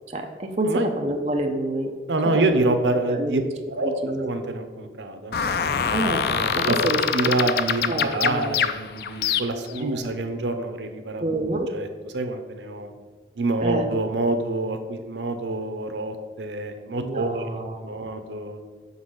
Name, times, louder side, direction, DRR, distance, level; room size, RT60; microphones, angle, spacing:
voice 1, 0.1-1.9 2.3-2.6 3.1-3.3 3.8-4.3 5.9-6.3 6.5-7.3 7.9-8.6 9.7-10.2 11.2-11.7 13.6-13.9 17.0-18.0, right 1 dB, 40° right, 3 dB, 0.6 m, -28 dB
voice 2, 2.1-3.4 3.8-3.9 4.2-5.4 6.3-6.8 7.1-11.4 11.7-11.9 12.1-12.9 13.4-18.6, right 2 dB, 85° right, 7 dB, 0.7 m, -26 dB
sound 1, 5.3-9.8, left 7 dB, 60° left, 0.3 m, -25 dB
5.9 x 4.0 x 6.2 m, 1.4 s
head